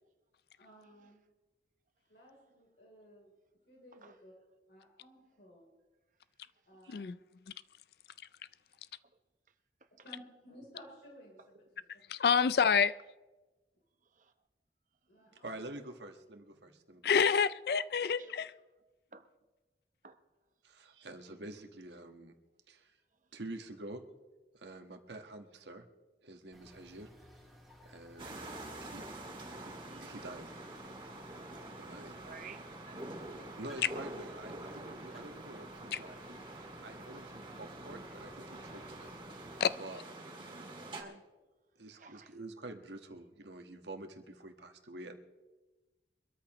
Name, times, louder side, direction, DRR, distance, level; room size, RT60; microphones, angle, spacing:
voice 1, 0.6-1.2 2.1-3.3 3.7-4.3 4.7-5.6 6.7-7.2 10.0-11.8 15.1-15.5 16.5-16.6 17.1-17.3 18.2-18.3 31.5-31.8, equal, 75° left, 3.7 m, -56 dB
voice 2, 12.1-13.0 17.0-18.5 35.9-36.0 39.6-39.7, left 6 dB, 60° left, 0.4 m, -27 dB
voice 3, 15.4-17.3 20.6-22.3 22.7-22.9 23.3-24.1 24.5-25.8 26.2-27.1 27.8-28.4 28.9-29.0 30.0-30.5 31.8-32.1 33.6-36.4 36.8-39.1 39.8-40.0 41.8-45.2, right 2 dB, 80° right, 1.4 m, -47 dB
sound 1, 26.5-39.6, left 1 dB, ahead, 2.7 m, -58 dB
sound 2, 28.2-41.0, right 2 dB, 30° right, 2.3 m, -46 dB
voice 4, 31.9-33.5 40.5-41.2 42.0-42.3, right 5 dB, 45° right, 0.9 m, -53 dB
24.0 x 13.5 x 3.1 m
head